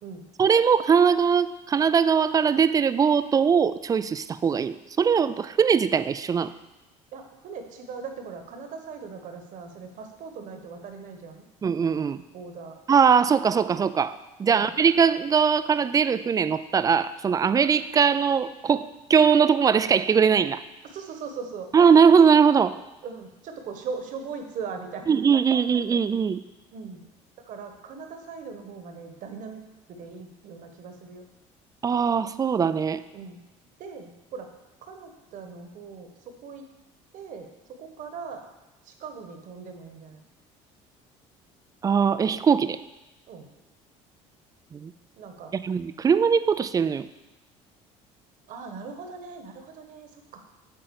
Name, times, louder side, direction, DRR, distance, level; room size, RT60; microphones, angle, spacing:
voice 1, 0.4-6.5 11.6-12.2 12.9-14.1 14.4-20.6 21.7-22.8 25.1-26.4 31.8-33.0 41.8-42.8 44.7-44.9 45.5-47.1, right 6 dB, 25° right, 14 dB, 0.4 m, -21 dB
voice 2, 7.1-11.5 12.3-12.8 14.5-14.7 20.9-21.7 23.0-25.6 26.7-27.1 27.5-29.6 29.9-31.2 33.1-33.4 33.8-34.5 34.8-36.7 37.1-38.4 38.8-40.2 43.3-43.5 45.2-45.5 48.5-50.4, right 5 dB, 60° right, 5 dB, 1.3 m, -39 dB
8.8 x 3.8 x 7.0 m, 1.0 s
supercardioid pair, 95°, 15 cm